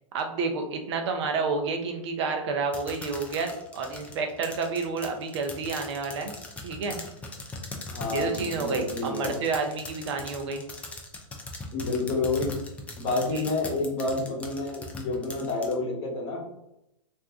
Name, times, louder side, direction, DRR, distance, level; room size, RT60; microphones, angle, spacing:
voice 1, 0.1-6.3 6.6-7.0 8.1-10.6 13.3-13.4, right 4 dB, 55° right, 5 dB, 0.7 m, -30 dB
sound 1, 2.7-15.7, left 3 dB, 10° left, 0.3 m, -40 dB
voice 2, 7.9-9.3 11.7-12.6 13.0-16.4, left 3 dB, 35° left, -1 dB, 1.2 m, -29 dB
2.7 x 2.3 x 3.4 m, 0.83 s
hypercardioid pair, 135°, 17 cm